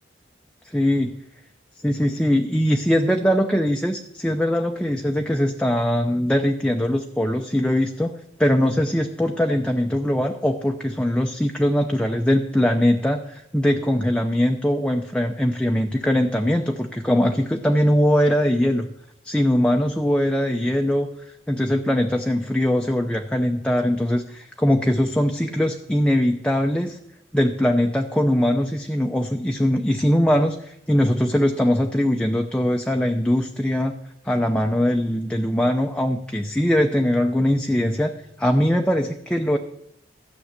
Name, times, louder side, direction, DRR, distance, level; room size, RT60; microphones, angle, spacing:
voice 1, 0.7-1.1 1.8-8.1 8.4-18.9 19.2-21.1 21.5-27.0 27.3-33.9 34.2-38.1 38.4-39.6, equal, 5° left, 3 dB, 0.7 m, -21 dB
13.0 x 6.3 x 8.2 m, 0.76 s
head